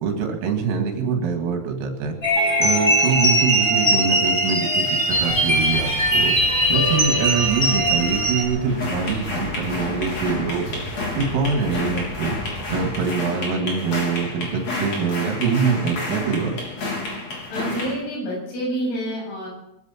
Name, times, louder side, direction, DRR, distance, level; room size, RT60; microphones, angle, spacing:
voice 1, 0.0-2.2 2.6-6.3 6.7-10.8 11.1-12.4 12.7-16.6, right 5 dB, 80° right, 3 dB, 4.9 m, -24 dB
sound 1, 2.2-8.4, right 1 dB, 5° left, 3.4 m, -20 dB
sound 2, 5.1-12.9, right 1 dB, 25° right, 4.7 m, -35 dB
sound 3, 8.7-17.9, left 2 dB, 35° left, 4.2 m, -30 dB
voice 2, 17.5-19.5, right 1 dB, 80° left, -3 dB, 11.0 m, -28 dB
23.5 x 13.0 x 4.5 m, 0.86 s
omnidirectional pair, 5.9 m